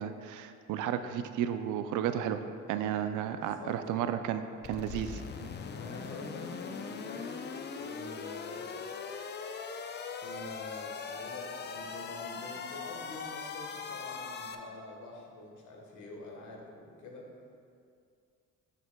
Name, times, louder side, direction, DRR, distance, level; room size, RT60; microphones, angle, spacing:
voice 1, 0.0-2.4 2.7-5.2, right 9 dB, 80° right, 9 dB, 0.5 m, -33 dB
voice 2, 2.9-4.2 5.6-7.5 7.8-8.6 10.2-17.3, left 2 dB, 75° left, 0 dB, 1.3 m, -47 dB
sound 1, 4.6-14.6, left 5 dB, 35° left, 0.5 m, -40 dB
9.2 x 5.9 x 2.2 m, 2.3 s
cardioid pair, 90°, 30 cm